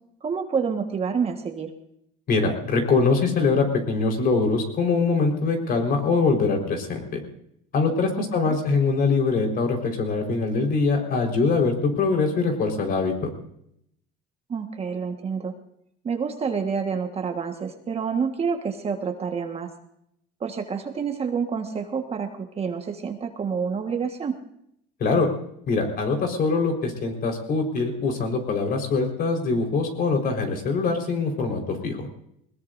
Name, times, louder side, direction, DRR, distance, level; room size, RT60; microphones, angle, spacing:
voice 1, 0.2-1.7 8.4-8.6 14.5-15.5 16.0-19.7 20.4-24.3, right 6 dB, 30° right, 5 dB, 1.5 m, -28 dB
voice 2, 2.3-7.2 7.7-13.3 25.0-25.3 25.7-32.1, left 4 dB, 50° left, 2 dB, 4.5 m, -23 dB
21.0 x 20.5 x 2.6 m, 0.73 s
cardioid pair, 125°, 20 cm